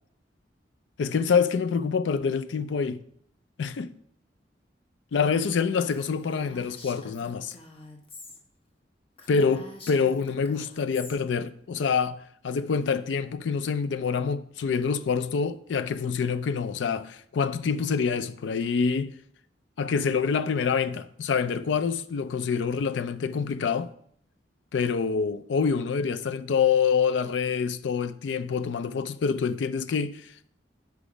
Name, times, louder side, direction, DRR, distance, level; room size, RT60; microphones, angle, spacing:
voice 1, 1.0-3.0 3.6-3.9 5.1-7.5 9.3-19.1 19.8-23.9 24.7-30.3, left 6 dB, 85° left, 0.4 m, -26 dB
Female speech woman speaking, 5.9-8.4 8.7-8.8 9.2-11.2, left 2 dB, 30° left, 0.9 m, -46 dB
7.0 x 4.8 x 5.0 m
head